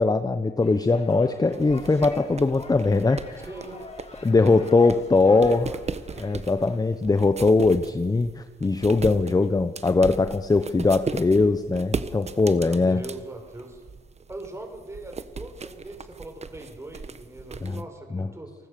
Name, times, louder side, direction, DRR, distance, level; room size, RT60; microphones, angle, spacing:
voice 1, 0.0-3.5 4.2-5.7 6.2-13.0 17.6-17.7 18.1-18.3, left 3 dB, 20° left, 10 dB, 1.0 m, -21 dB
sound 1, 0.6-6.8, left 3 dB, 35° left, 6.7 m, -45 dB
sound 2, 1.5-17.8, right 5 dB, 35° right, 1.3 m, -38 dB
voice 2, 3.5-3.8 4.4-6.4 12.6-13.8 14.3-18.6, right 2 dB, 15° right, 4 dB, 5.5 m, -41 dB
29.0 x 19.5 x 6.9 m, 1.4 s
cardioid pair, 90°, 20 cm